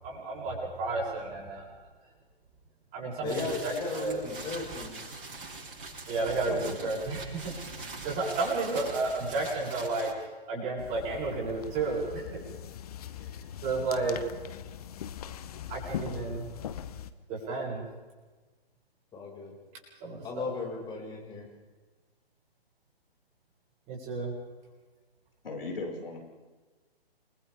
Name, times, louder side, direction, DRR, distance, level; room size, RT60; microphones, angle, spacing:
voice 1, 0.0-1.6 2.9-4.2 6.1-7.5 8.0-10.1 10.5-12.4 13.6-14.2 15.7-16.5 17.3-17.9 20.0-20.5 23.9-24.3, right 3 dB, 25° right, -3 dB, 7.5 m, -32 dB
voice 2, 3.2-5.0 6.5-6.9 19.1-19.5 20.2-21.5, left 4 dB, 15° left, -2 dB, 5.7 m, -36 dB
sound 1, 3.3-10.1, right 3 dB, 60° right, 7.9 m, -42 dB
sound 2, 10.8-17.1, left 9 dB, 40° left, 1.2 m, -41 dB
voice 3, 25.4-26.2, left 3 dB, 65° left, 1 dB, 5.7 m, -36 dB
29.5 x 24.0 x 3.6 m, 1.3 s
figure-of-eight pair, 135°, 31 cm